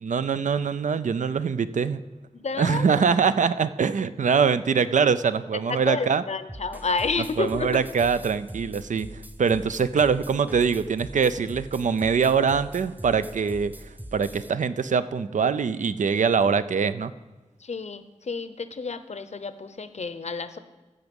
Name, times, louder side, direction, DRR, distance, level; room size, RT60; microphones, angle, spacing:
voice 1, 0.0-2.0 2.6-6.2 7.4-9.1 9.4-13.7 14.1-17.1, right 6 dB, 85° right, 13 dB, 0.4 m, -23 dB
voice 2, 2.3-3.0 5.9-7.8 17.6-20.6, left 4 dB, 65° left, 12 dB, 0.7 m, -30 dB
sound 1, 6.5-14.5, right 1 dB, 15° right, 0.6 m, -42 dB
14.5 x 6.0 x 5.2 m, 1.2 s
wide cardioid pair, 75°, 12 cm